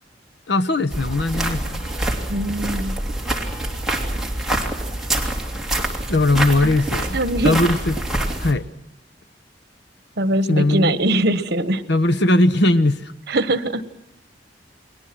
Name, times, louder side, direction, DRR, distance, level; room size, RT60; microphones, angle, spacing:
voice 1, 0.5-1.9 6.1-7.2 7.4-8.0 8.4-8.6 10.5-11.0 11.9-13.1, left 2 dB, 70° left, 11 dB, 1.2 m, -19 dB
sound 1, 0.9-8.5, right 1 dB, 5° right, 3.1 m, -25 dB
voice 2, 2.3-2.9 6.6-6.7 7.1-7.6 10.2-11.8 13.3-13.8, right 1 dB, 65° right, 13 dB, 1.4 m, -21 dB
30.0 x 21.0 x 6.1 m, 0.78 s
head